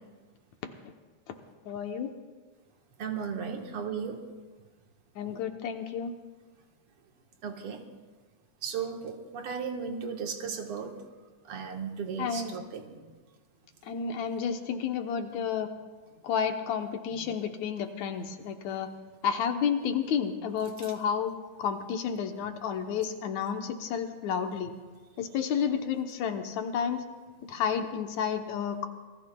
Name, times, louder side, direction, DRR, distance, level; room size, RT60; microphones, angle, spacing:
voice 1, 1.7-2.1 5.2-6.1 12.2-12.6 13.8-15.7 16.2-18.9 19.2-21.3 21.6-24.7 25.2-27.0 27.5-28.9, left 7 dB, 75° left, 5 dB, 2.2 m, -31 dB
voice 2, 3.0-4.2 5.2-5.4 7.4-7.8 8.6-10.9 11.5-13.2 17.1-17.4, right 6 dB, 55° right, 3 dB, 2.0 m, -36 dB
26.5 x 19.5 x 2.3 m, 1.3 s
omnidirectional pair, 3.4 m